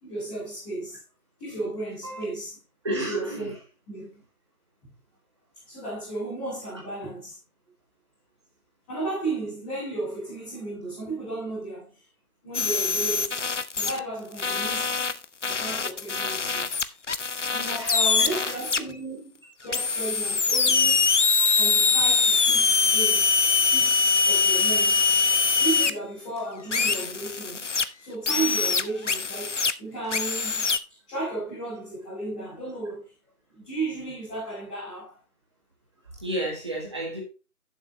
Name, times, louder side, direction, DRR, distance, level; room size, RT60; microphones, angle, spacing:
voice 1, 0.0-1.0 1.4-2.6 2.9-3.5 3.9-4.2 5.7-7.4 8.9-11.9 12.4-13.4 13.7-15.0 15.4-16.7 17.5-19.3 19.6-21.0 21.6-23.4 23.7-25.0 25.6-27.7 28.0-30.7 31.1-33.0 33.5-35.2, right 2 dB, 5° left, 2.3 m, -34 dB
voice 2, 2.8-3.5 17.4-18.6 36.1-37.2, right 1 dB, 20° right, 1.6 m, -32 dB
sound 1, 12.5-14.0 14.4-18.8 19.7-25.9 26.7-27.8 28.3-29.7 30.1-30.8, left 5 dB, 55° left, 0.6 m, -23 dB
11.5 x 7.2 x 2.9 m
figure-of-eight pair, 165°, 45 cm